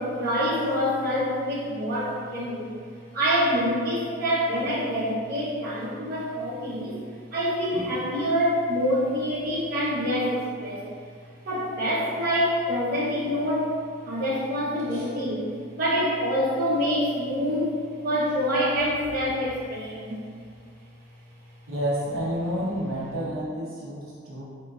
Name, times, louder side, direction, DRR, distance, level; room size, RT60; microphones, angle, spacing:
voice 1, 0.0-2.8 3.1-7.0 7.3-10.9 11.4-13.7 14.0-15.5 15.8-20.2, equal, 45° right, -9 dB, 0.9 m, -26 dB
voice 2, 21.7-24.4, equal, 80° right, -7 dB, 0.7 m, -30 dB
4.3 x 2.9 x 2.3 m, 2.1 s
head